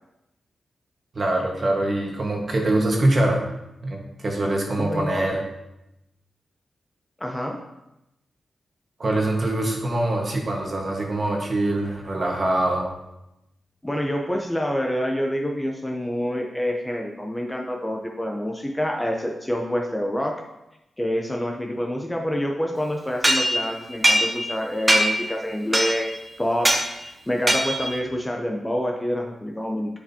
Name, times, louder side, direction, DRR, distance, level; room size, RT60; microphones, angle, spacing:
voice 1, 1.1-3.4 3.8-5.4 9.0-12.9, right 1 dB, 35° right, 0 dB, 1.4 m, -23 dB
voice 2, 4.8-5.2 7.2-7.6 13.8-20.4 21.0-26.1 26.4-30.0, equal, 10° left, 1 dB, 0.6 m, -27 dB
sound 1, 23.2-24.6 24.9-25.3 25.7-26.2 26.6-26.9 27.5-28.0, right 1 dB, 15° right, 0.9 m, -21 dB
10.5 x 5.0 x 2.8 m, 0.90 s
wide cardioid pair, 135°, 0 cm